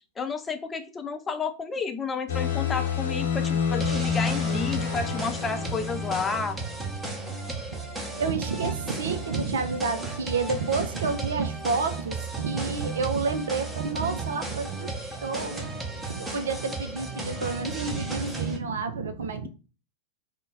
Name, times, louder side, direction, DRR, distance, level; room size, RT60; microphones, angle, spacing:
voice 1, 0.2-6.6, left 5 dB, 15° left, 0.5 m, -31 dB
sound 1, 2.3-6.7, left 6 dB, 65° left, 0.7 m, -28 dB
sound 2, 3.8-18.6, right 3 dB, 10° right, 0.8 m, -34 dB
voice 2, 8.2-19.5, right 4 dB, 65° right, 0.5 m, -30 dB
3.8 x 2.2 x 3.7 m
figure-of-eight pair, 90°, 0 cm